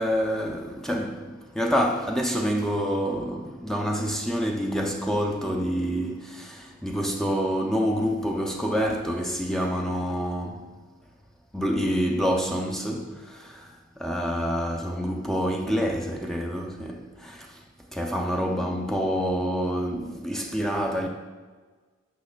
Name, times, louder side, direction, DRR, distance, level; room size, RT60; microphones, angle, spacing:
voice 1, 0.0-10.7 11.5-13.7 14.0-17.6 17.9-21.1, equal, ahead, 0.4 m, -27 dB
8.3 x 5.6 x 2.2 m
head